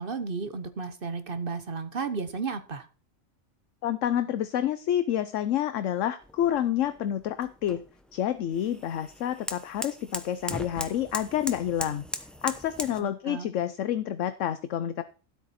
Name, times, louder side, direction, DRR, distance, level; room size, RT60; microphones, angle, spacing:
voice 1, 0.0-2.9 13.0-13.5, right 4 dB, 45° right, 10 dB, 1.1 m, -33 dB
voice 2, 3.8-7.8 8.1-12.0 12.4-15.0, left 11 dB, 70° left, 12 dB, 1.0 m, -28 dB
sound 1, 6.2-13.0, equal, ahead, 0.6 m, -39 dB
13.0 x 8.4 x 4.2 m, 0.38 s
omnidirectional pair, 1.4 m